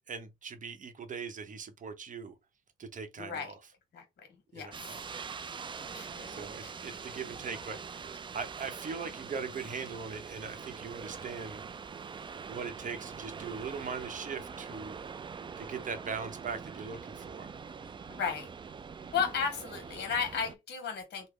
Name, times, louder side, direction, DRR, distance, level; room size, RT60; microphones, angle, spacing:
voice 1, 0.1-2.3 2.8-3.5 4.5-5.0 6.3-11.7 12.5-15.0 15.6-17.5, right 5 dB, 40° right, 0.8 m, -40 dB
voice 2, 3.2-3.5 3.9-4.0 4.5-4.7 5.9-6.9 18.1-18.5 19.1-21.3, left 6 dB, 55° left, 1.2 m, -34 dB
sound 1, 4.7-20.5, right 6 dB, 25° right, 0.3 m, -44 dB
3.2 x 2.1 x 3.6 m
cardioid pair, 90°, 20 cm